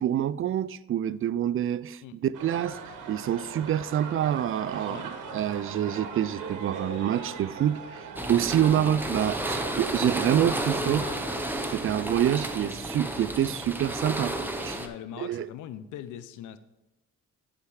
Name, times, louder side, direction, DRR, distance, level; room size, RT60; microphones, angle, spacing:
voice 1, 0.0-2.8 3.1-11.1 11.7-14.8 15.2-15.5, right 10 dB, 45° right, 0.4 m, -27 dB
sound 1, 2.3-12.6, right 4 dB, 85° right, 1.5 m, -40 dB
sound 2, 8.2-14.9, right 1 dB, 5° right, 1.0 m, -32 dB
voice 2, 10.8-11.2 14.7-16.6, left 10 dB, 85° left, 0.6 m, -41 dB
11.0 x 5.0 x 4.8 m
cardioid pair, 90°, 30 cm